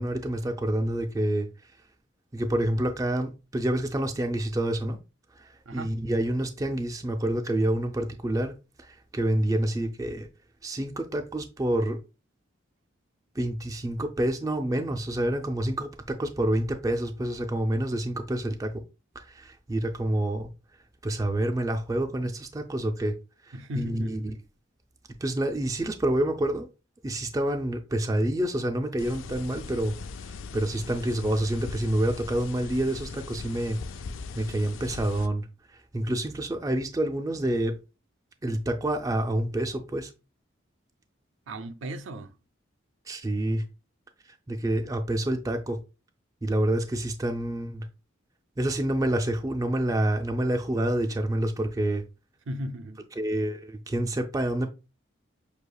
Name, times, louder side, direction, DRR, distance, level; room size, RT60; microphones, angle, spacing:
voice 1, 0.0-1.5 2.3-5.0 5.4-10.3 10.6-12.0 13.4-18.8 19.2-20.5 21.0-23.1 23.4-24.3 25.2-26.7 27.0-29.9 30.5-33.8 34.3-37.8 38.4-40.1 43.1-43.6 44.5-45.8 46.4-47.9 48.6-52.0 53.2-54.7, right 1 dB, 15° right, 0.3 m, -28 dB
voice 2, 23.5-24.4 41.5-42.3 52.5-53.0, equal, 75° right, 0.5 m, -36 dB
sound 1, 29.0-35.3, left 4 dB, 80° left, 0.4 m, -40 dB
6.3 x 2.8 x 2.3 m
head